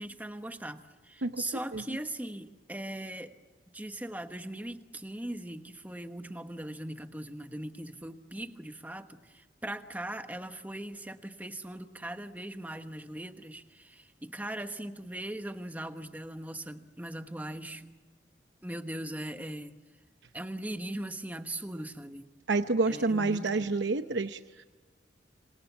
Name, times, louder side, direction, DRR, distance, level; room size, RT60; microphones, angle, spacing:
voice 1, 0.0-3.3 3.7-18.0 18.6-19.7 20.3-22.3 22.9-23.7, right 1 dB, 10° right, 8 dB, 1.2 m, -40 dB
voice 2, 22.5-24.6, right 3 dB, 80° right, 9 dB, 0.8 m, -29 dB
26.5 x 26.5 x 7.3 m, 1.4 s
head